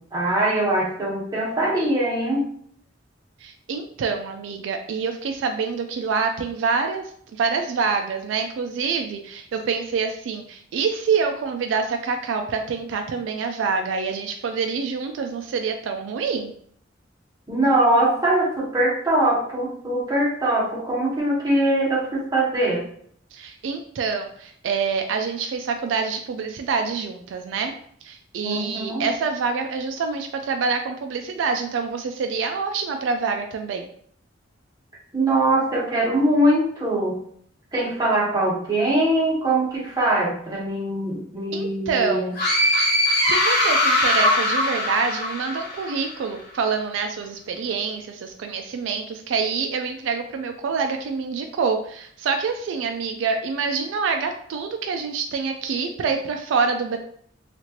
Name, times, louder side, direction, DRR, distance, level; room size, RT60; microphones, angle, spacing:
voice 1, 0.1-2.5 17.5-22.8 28.4-29.1 35.1-37.2 37.7-42.3, right 1 dB, 20° right, -6 dB, 1.0 m, -22 dB
voice 2, 3.4-16.5 23.3-27.7 28.0-33.9 41.5-42.3 43.2-57.0, right 5 dB, 75° right, 5 dB, 0.3 m, -26 dB
sound 1, 42.4-46.0, left 1 dB, 55° left, 1.1 m, -21 dB
3.0 x 2.4 x 2.8 m, 0.62 s
head